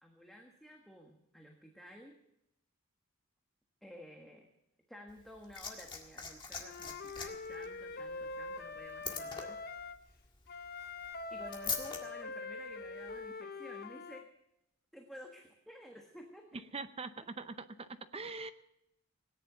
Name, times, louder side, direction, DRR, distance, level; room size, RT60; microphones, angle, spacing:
voice 1, 0.0-2.2 3.8-4.5 4.9-9.6 11.3-14.2 14.9-16.6, equal, ahead, 1 dB, 1.4 m, -52 dB
Liquid, 5.1-12.0 13.1-13.2, left 5 dB, 25° left, 1.9 m, -44 dB
Wind instrument woodwind instrument, 6.6-10.0 10.5-14.2, left 4 dB, 50° left, 0.7 m, -44 dB
voice 2, 16.5-18.5, right 3 dB, 30° right, 11 dB, 0.6 m, -43 dB
18.0 x 10.0 x 6.8 m, 0.82 s
head